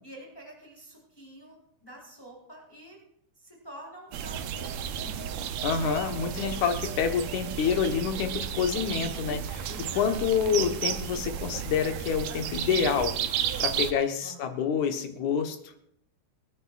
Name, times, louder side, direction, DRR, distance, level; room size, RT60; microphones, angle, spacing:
voice 1, 0.0-3.0 3.4-5.3 9.6-10.6 14.2-14.7, right 1 dB, 5° left, -3 dB, 5.9 m, -48 dB
Nature Sounds Quiet Environment, 4.1-13.9, right 9 dB, 70° right, 2.0 m, -33 dB
voice 2, 5.6-9.7 10.0-13.2 13.6-15.6, left 7 dB, 80° left, 5 dB, 2.8 m, -27 dB
28.0 x 9.9 x 2.6 m, 0.74 s
omnidirectional pair, 3.4 m